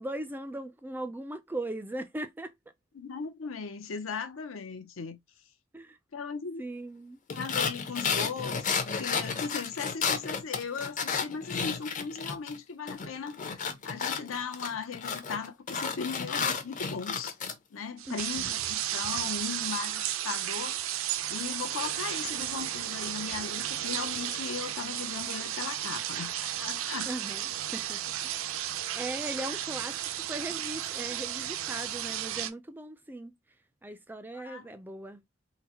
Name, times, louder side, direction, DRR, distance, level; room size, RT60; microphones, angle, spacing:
voice 1, 0.0-2.5 5.7-6.0 6.6-7.2 18.1-18.5 27.1-27.4 27.7-28.3 28.9-33.3 33.8-35.2, right 1 dB, 10° right, 0.3 m, -39 dB
voice 2, 2.9-5.2 6.1-6.6 7.3-17.4 17.7-27.1 34.3-34.7, left 5 dB, 80° left, 0.6 m, -38 dB
sound 1, 7.3-12.6 12.9-17.5, left 5 dB, 40° left, 0.6 m, -32 dB
sound 2, 18.0-32.5, right 11 dB, 80° right, 0.4 m, -34 dB
3.8 x 2.0 x 2.8 m
head